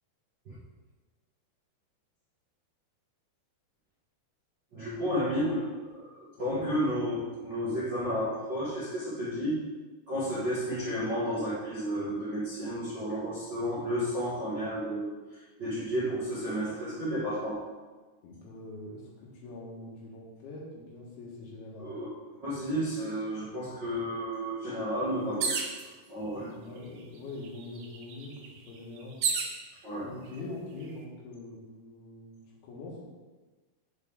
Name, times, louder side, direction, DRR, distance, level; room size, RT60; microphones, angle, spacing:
voice 1, 4.7-5.6 5.9-9.6 10.1-17.6 21.8-22.1 22.4-25.6 26.1-26.5 29.8-30.1, equal, 50° right, -11 dB, 1.3 m, -32 dB
voice 2, 6.4-6.8 18.2-21.9 26.3-29.2 30.0-33.0, left 2 dB, 75° left, -2 dB, 3.1 m, -43 dB
sound 1, 25.4-25.8 26.8-26.9 27.2-29.6 30.3-30.8, right 5 dB, 85° right, 1.9 m, -32 dB
7.1 x 6.6 x 3.6 m, 1.3 s
omnidirectional pair, 4.9 m